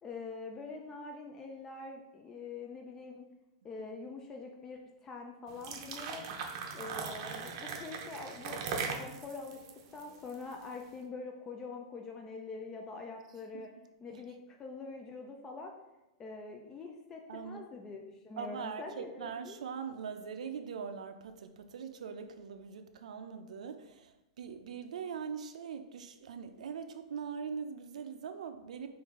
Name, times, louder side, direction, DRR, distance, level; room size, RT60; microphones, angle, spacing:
voice 1, 0.0-3.2 3.6-6.2 6.7-9.6 9.9-13.7 14.0-15.7 16.2-19.6, left 4 dB, 15° left, 2 dB, 0.3 m, -44 dB
sound 1, 5.5-10.7, right 5 dB, 40° right, 0.6 m, -40 dB
voice 2, 17.3-17.7 18.4-28.9, right 6 dB, 85° right, 7 dB, 0.5 m, -42 dB
5.5 x 2.5 x 3.6 m, 0.96 s
supercardioid pair, 165°, 4 cm